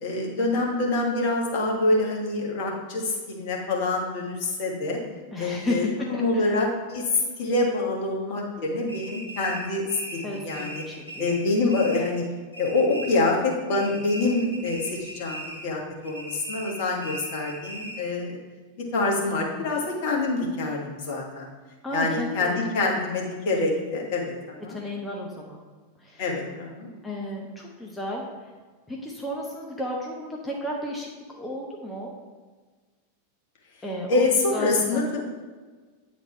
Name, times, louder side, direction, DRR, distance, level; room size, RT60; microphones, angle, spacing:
voice 1, 0.0-5.0 5.4-9.8 10.1-10.8 11.2-12.2 12.6-18.4 18.9-21.5 21.9-24.8 26.2-26.9 34.1-35.2, left 2 dB, 50° left, -1 dB, 1.5 m, -26 dB
voice 2, 5.3-6.6 10.2-11.4 21.8-22.9 24.7-25.6 26.0-26.2 27.0-28.5 28.9-31.1 31.4-32.1 33.8-35.2, left 1 dB, 10° left, -2 dB, 1.0 m, -33 dB
sound 1, 8.9-12.3 12.5-13.4 13.7-15.7 16.0-18.2, right 1 dB, 90° left, 1.6 m, -39 dB
9.0 x 4.1 x 4.4 m, 1.4 s
figure-of-eight pair, 90°, 0 cm